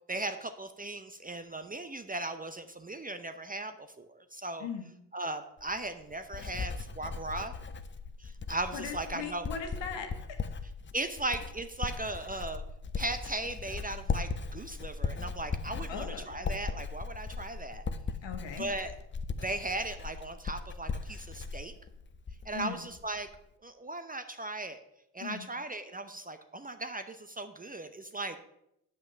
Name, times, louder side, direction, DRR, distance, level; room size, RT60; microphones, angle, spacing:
voice 1, 0.1-4.7 5.1-7.5 8.2-9.5 10.9-12.6 12.9-17.8 18.6-18.9 19.4-21.7 22.4-23.3 23.6-24.8 25.1-28.4, right 2 dB, 20° right, 9 dB, 0.6 m, -37 dB
Writing, 5.6-22.6 22.9-23.4, left 5 dB, 25° left, 0.7 m, -38 dB
voice 2, 8.7-10.5 15.9-16.3 18.2-18.9 22.5-22.8 25.2-25.5, left 6 dB, 65° left, 5 dB, 1.6 m, -39 dB
7.4 x 5.9 x 6.3 m, 0.81 s
hypercardioid pair, 55°, 48 cm